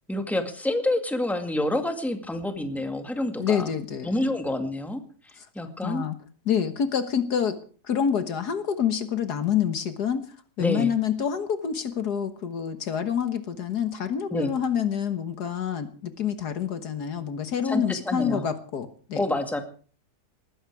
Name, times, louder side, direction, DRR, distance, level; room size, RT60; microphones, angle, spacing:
voice 1, 0.1-3.7 4.0-5.0 5.6-6.0 10.6-10.9 14.3-14.5 17.6-18.4 19.2-19.6, left 1 dB, ahead, 6 dB, 2.0 m, -28 dB
voice 2, 3.4-4.2 5.4-5.5 5.8-6.2 6.5-7.6 7.9-10.2 10.6-19.2, left 8 dB, 70° left, 10 dB, 1.8 m, -27 dB
19.5 x 15.5 x 4.8 m, 0.41 s
omnidirectional pair, 1.9 m